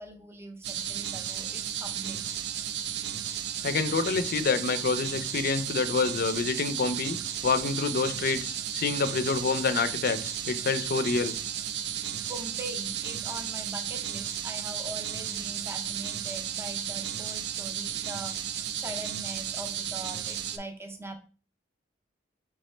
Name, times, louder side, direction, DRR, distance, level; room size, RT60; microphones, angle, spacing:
voice 1, 0.0-2.2 12.3-21.2, right 1 dB, 15° right, 0.6 m, -42 dB
sound 1, 0.6-20.6, right 9 dB, 65° right, 0.4 m, -34 dB
voice 2, 3.6-7.2 7.4-11.4, left 4 dB, 55° left, 0.4 m, -27 dB
3.9 x 3.5 x 3.2 m
head